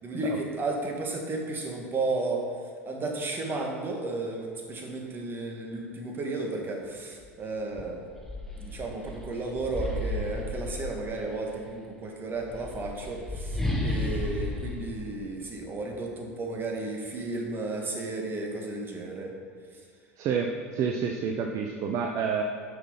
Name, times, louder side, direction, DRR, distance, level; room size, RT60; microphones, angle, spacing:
voice 1, 0.0-2.4 2.9-8.0 8.6-19.3, right 2 dB, 30° right, 1 dB, 1.9 m, -33 dB
sound 1, 7.2-7.3 7.7-11.4 12.3-16.0, left 1 dB, 5° left, 1.5 m, -33 dB
voice 2, 20.2-22.4, right 6 dB, 45° right, 3 dB, 0.8 m, -29 dB
8.1 x 6.2 x 5.6 m, 2.1 s
hypercardioid pair, 80°, 8 cm